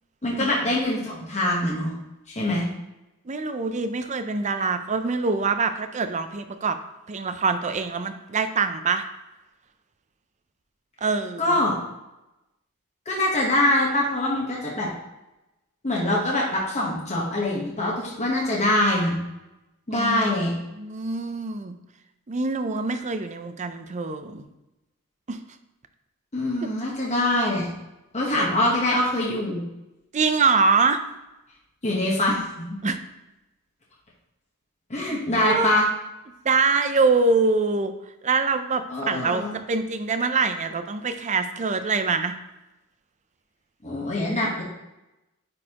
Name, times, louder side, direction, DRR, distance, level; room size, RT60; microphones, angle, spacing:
voice 1, 0.2-1.9 2.3-2.7 11.4-11.7 13.1-14.9 15.8-19.2 19.9-20.5 26.3-27.7 28.1-29.6 31.8-32.8 34.9-35.9 38.9-39.6 43.8-44.6, left 1 dB, 30° left, -4 dB, 1.1 m, -24 dB
voice 2, 3.3-6.8 7.1-9.1 11.0-11.6 19.9-20.4 20.8-21.7 22.3-24.5 25.3-25.4 26.6-26.7 28.4-28.5 30.1-31.0 32.8-33.0 35.1-35.7 36.4-37.9 38.2-42.3, right 4 dB, 35° right, 9 dB, 0.5 m, -24 dB
9.6 x 4.1 x 2.9 m, 0.97 s
head